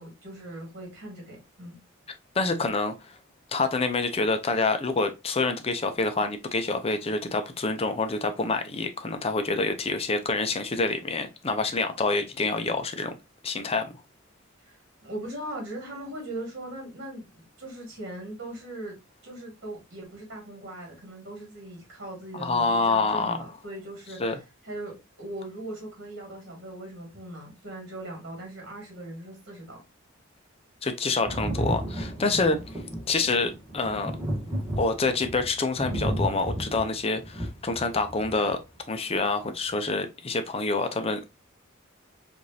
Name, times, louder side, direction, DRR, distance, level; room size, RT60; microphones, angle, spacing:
voice 1, 0.0-1.8 14.6-19.0 19.2-24.2 24.6-29.8, right 1 dB, 55° right, 2.0 m, -39 dB
voice 2, 2.4-2.9 3.5-13.1 13.4-13.9 22.3-23.4 24.2-24.3 30.8-32.6 33.1-34.1 34.8-38.6 38.9-41.3, left 3 dB, 30° left, 0.6 m, -27 dB
Thunder, 31.2-38.6 39.7-39.8, right 1 dB, 10° right, 1.3 m, -33 dB
4.8 x 2.6 x 2.7 m
head